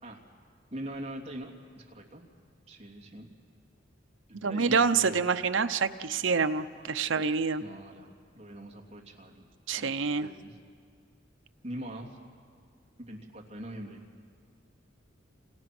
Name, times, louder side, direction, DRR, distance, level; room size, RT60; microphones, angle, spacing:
voice 1, 0.7-1.5 1.8-2.2 2.7-3.3 4.3-5.2 6.8-6.9 7.6-9.4 9.8-10.6 11.6-12.2 13.1-14.0, right 1 dB, 30° right, -1 dB, 2.9 m, -42 dB
voice 2, 4.4-7.6 9.7-10.3, right 5 dB, 75° right, 10 dB, 0.8 m, -27 dB
29.5 x 28.0 x 6.1 m, 2.2 s
head